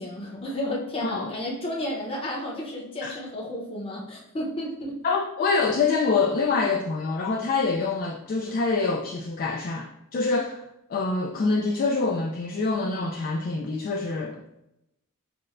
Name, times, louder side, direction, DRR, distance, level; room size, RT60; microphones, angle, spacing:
voice 1, 0.0-5.0, left 1 dB, 25° left, -3 dB, 0.8 m, -32 dB
voice 2, 5.0-10.6 10.9-14.4, left 4 dB, 45° left, 0 dB, 0.3 m, -25 dB
5.9 x 2.2 x 2.5 m, 0.84 s
head